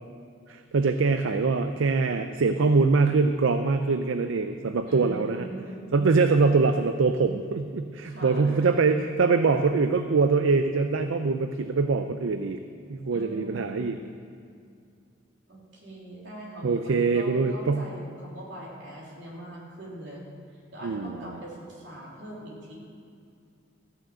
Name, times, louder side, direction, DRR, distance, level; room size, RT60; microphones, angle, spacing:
voice 1, 0.5-5.5 5.9-12.6 12.9-14.0 16.6-17.8 20.8-21.2, right 4 dB, 85° right, 8 dB, 0.5 m, -23 dB
voice 2, 4.9-5.7 8.0-8.8 13.1-14.1 15.5-20.2 20.5-22.7, right 1 dB, 65° right, -5 dB, 3.3 m, -41 dB
14.0 x 6.3 x 7.6 m, 2.4 s
head